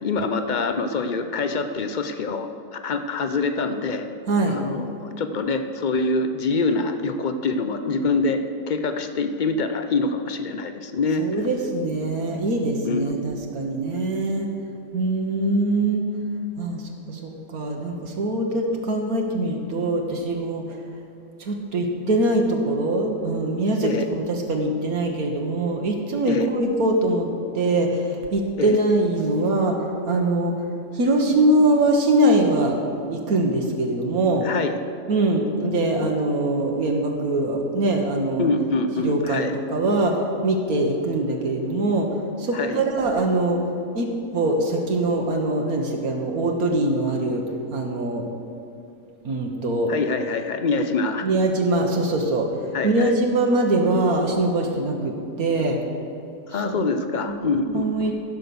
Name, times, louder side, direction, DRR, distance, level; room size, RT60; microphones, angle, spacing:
voice 1, 0.0-4.1 4.4-11.3 12.8-13.2 23.8-24.1 26.3-26.5 28.6-28.8 34.4-34.7 38.4-39.5 42.5-42.9 49.9-51.3 52.7-53.2 56.5-58.1, left 3 dB, 60° left, 8 dB, 0.5 m, -25 dB
voice 2, 4.3-4.6 11.2-14.5 14.9-16.1 16.6-20.6 21.4-30.5 30.9-32.8 33.1-34.5 35.1-38.5 39.0-40.2 40.4-42.1 42.4-43.6 43.9-47.4 47.7-48.3 49.2-49.9 51.2-52.5 52.8-55.8 56.5-56.9 57.2-58.1, right 2 dB, 75° right, 1 dB, 1.6 m, -23 dB
15.0 x 5.9 x 6.9 m, 2.6 s
omnidirectional pair, 1.6 m